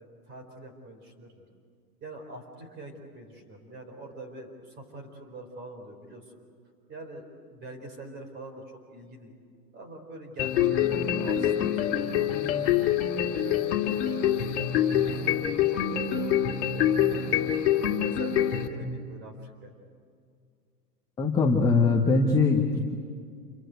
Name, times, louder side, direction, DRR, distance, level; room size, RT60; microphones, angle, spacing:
voice 1, 0.0-1.4 2.0-6.3 6.9-8.6 8.9-9.3 9.7-12.7 13.1-15.3 15.7-19.7, right 2 dB, 20° right, 5 dB, 4.3 m, -44 dB
sound 1, 10.4-18.7, left 10 dB, 45° left, 2.5 m, -25 dB
voice 2, 21.2-22.9, left 3 dB, 10° left, 0 dB, 1.1 m, -22 dB
28.5 x 23.0 x 8.2 m, 2.2 s
hypercardioid pair, 155°, 48 cm